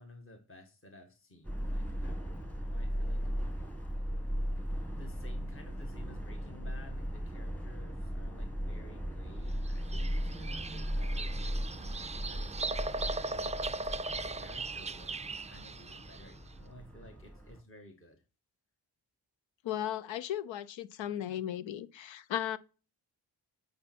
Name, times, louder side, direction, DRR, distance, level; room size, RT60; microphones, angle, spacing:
voice 1, 0.0-3.2 4.9-13.5 14.2-18.2, left 1 dB, 30° left, 1.6 m, -55 dB
Subway metro underground, 1.4-17.6, equal, 5° left, 1.9 m, -37 dB
Bird vocalization bird call bird song, 9.6-16.3, right 3 dB, 15° right, 0.4 m, -38 dB
voice 2, 19.6-22.6, left 11 dB, 80° left, 0.7 m, -36 dB
8.8 x 5.3 x 4.4 m
supercardioid pair, 45°, 45 cm